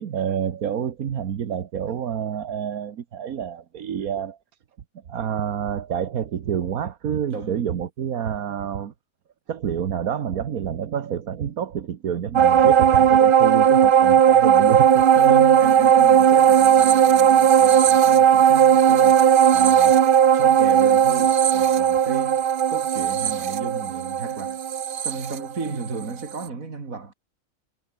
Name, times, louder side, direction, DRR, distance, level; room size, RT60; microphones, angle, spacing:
voice 1, 0.0-4.4 5.1-8.9 9.5-15.1, right 8 dB, 90° right, 1.6 m, -28 dB
voice 2, 7.3-7.6 15.1-24.6 25.0-27.1, right 4 dB, 75° right, 3.2 m, -34 dB
sound 1, 12.3-26.0 26.4-26.5, right 9 dB, 50° right, 0.7 m, -16 dB
omnidirectional pair, 1.5 m